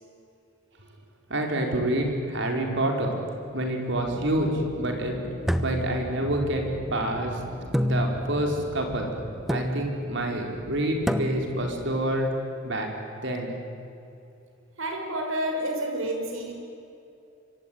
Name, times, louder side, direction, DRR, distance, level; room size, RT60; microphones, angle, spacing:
voice 1, 1.3-3.1 3.5-5.2 5.6-7.4 7.8-9.1 9.5-12.3 12.6-12.9 13.2-13.6, right 1 dB, 60° right, 2 dB, 4.9 m, -27 dB
sound 1, 3.9-11.9, equal, 85° left, 7.2 m, -41 dB
sound 2, 5.5-6.7 7.7-8.5 9.5-10.1 11.1-11.7, equal, ahead, 1.1 m, -28 dB
voice 2, 14.8-16.5, right 1 dB, 85° right, 3 dB, 5.9 m, -29 dB
26.0 x 23.5 x 9.6 m, 2.7 s
head